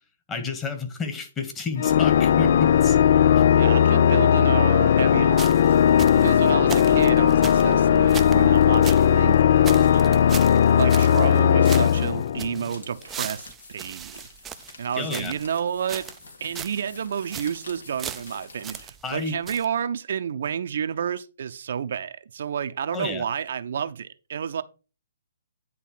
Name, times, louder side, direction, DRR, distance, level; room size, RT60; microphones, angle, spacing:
voice 1, 0.3-3.0 15.0-15.3 19.0-19.4 22.9-23.2, left 4 dB, 15° left, 1.6 m, -30 dB
Organ, 1.8-12.7, left 9 dB, 55° left, 0.4 m, -18 dB
voice 2, 3.5-5.7 6.2-10.2 10.8-14.2 14.8-16.1 16.4-24.6, right 8 dB, 65° right, 0.7 m, -30 dB
sound 1, 5.3-9.1 9.3-9.4 9.6-11.4 11.6-15.5 15.9-16.3 16.5-16.8 17.1-17.6 18.0-19.2 19.5-19.6, right 8 dB, 15° right, 0.5 m, -38 dB
sound 2, 12.7-19.0, left 3 dB, 80° left, 2.4 m, -47 dB
10.0 x 3.7 x 5.9 m
hypercardioid pair, 140°, 0 cm